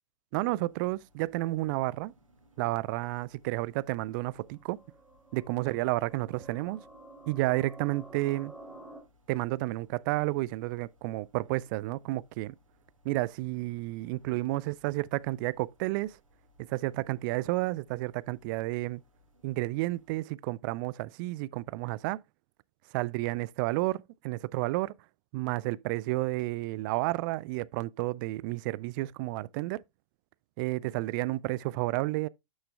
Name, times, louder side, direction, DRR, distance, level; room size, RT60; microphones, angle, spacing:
voice 1, 0.3-2.1 2.6-4.8 5.3-6.8 7.3-8.5 9.3-12.6 13.0-16.2 16.7-19.0 19.4-22.2 22.9-24.9 25.3-29.8 30.6-32.3, right 20 dB, 40° right, 0.3 m, -31 dB
sound 1, 0.7-20.2, left 1 dB, 90° right, 2.3 m, -66 dB
sound 2, 4.3-9.0, right 2 dB, 5° right, 2.8 m, -51 dB
11.5 x 6.4 x 2.2 m
figure-of-eight pair, 105°, 17 cm